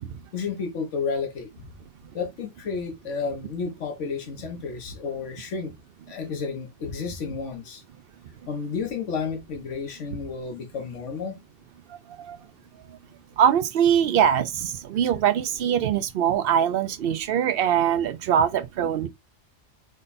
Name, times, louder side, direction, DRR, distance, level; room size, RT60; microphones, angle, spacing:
voice 1, 0.3-1.5 2.1-5.7 6.1-7.8 8.5-11.4, left 5 dB, 80° left, 1.3 m, -31 dB
voice 2, 13.4-19.1, right 9 dB, 60° right, 0.7 m, -22 dB
5.2 x 2.2 x 4.0 m
omnidirectional pair, 1.2 m